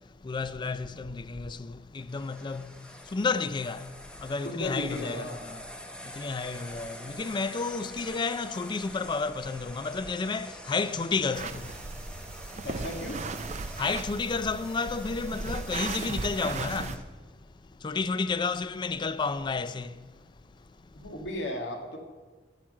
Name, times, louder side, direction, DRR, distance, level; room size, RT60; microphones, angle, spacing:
voice 1, 0.2-1.6 1.9-2.7 3.1-3.8 4.2-5.6 6.2-11.6 13.8-16.9 17.8-19.9, left 4 dB, 25° left, 0.3 m, -31 dB
sound 1, 2.0-17.0, equal, 5° left, 0.8 m, -46 dB
voice 2, 4.4-5.4 12.6-13.2 20.9-22.0, left 1 dB, 85° left, 1.8 m, -35 dB
sound 2, 11.3-17.0, right 4 dB, 40° right, 0.4 m, -37 dB
11.0 x 5.9 x 7.5 m
head